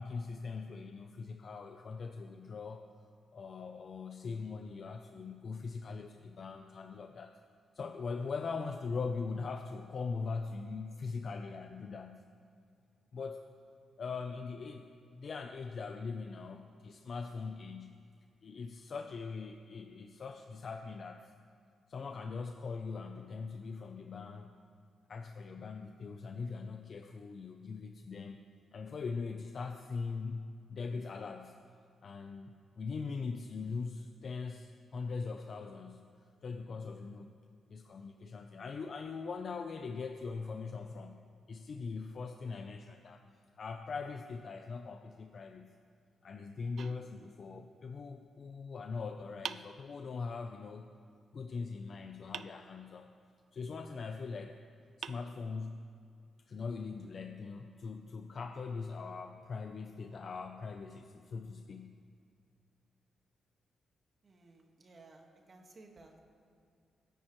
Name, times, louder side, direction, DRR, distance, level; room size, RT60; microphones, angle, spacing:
voice 1, 0.0-2.9 3.3-7.4 7.7-12.2 13.1-13.5 14.0-18.0 18.4-21.3 21.9-24.6 25.1-28.4 28.7-31.6 32.0-36.1 36.4-37.3 37.7-41.2 41.5-43.3 43.6-45.7 46.2-50.9 51.3-53.1 53.5-54.6 55.0-55.9 56.5-61.9, left 4 dB, 55° left, 5 dB, 0.6 m, -41 dB
sound 1, 46.8-47.8 49.4-50.4 52.3-53.3 54.4-54.5 55.0-56.0, right 7 dB, 70° right, 0.4 m, -47 dB
voice 2, 47.0-47.3 64.2-66.2, right 3 dB, 45° right, 2 dB, 1.7 m, -58 dB
22.5 x 10.0 x 3.2 m, 2.3 s
cardioid pair, 75°, 0 cm